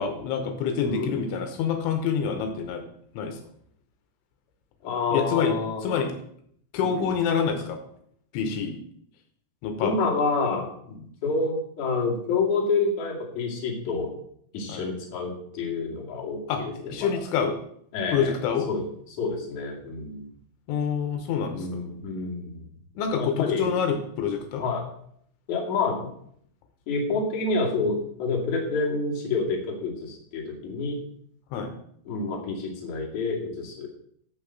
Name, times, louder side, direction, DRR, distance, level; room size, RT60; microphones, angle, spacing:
voice 1, 0.0-2.8 3.1-3.4 5.1-5.6 5.8-6.1 6.7-7.8 8.3-8.8 9.6-10.1 11.0-11.1 14.7-14.8 16.5-17.6 18.1-18.7 20.7-21.8 23.0-24.6 31.5-31.7, left 6 dB, 80° left, 6 dB, 3.4 m, -27 dB
voice 2, 0.8-1.2 4.8-6.0 6.9-7.1 9.8-10.7 11.2-14.1 14.5-16.7 17.0-17.2 17.9-18.3 18.7-18.8 19.2-20.3 21.5-22.6 23.1-23.8 24.6-24.9 25.5-26.1 26.9-31.0 32.0-33.9, left 4 dB, 45° left, -2 dB, 3.0 m, -28 dB
10.5 x 5.8 x 7.7 m, 0.67 s
omnidirectional pair, 5.6 m